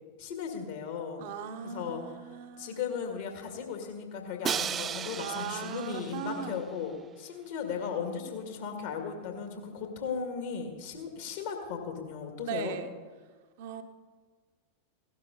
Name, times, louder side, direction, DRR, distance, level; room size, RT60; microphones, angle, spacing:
voice 1, 0.2-1.2 1.6-12.8, left 6 dB, 55° left, 4 dB, 2.2 m, -36 dB
voice 2, 1.2-2.8 5.2-6.7 12.4-12.9 13.6-13.8, right 7 dB, 50° right, 6 dB, 0.8 m, -38 dB
Crash cymbal, 4.4-6.5, right 8 dB, 25° right, 0.3 m, -35 dB
17.0 x 12.0 x 4.0 m, 1.5 s
figure-of-eight pair, 90°, 0 cm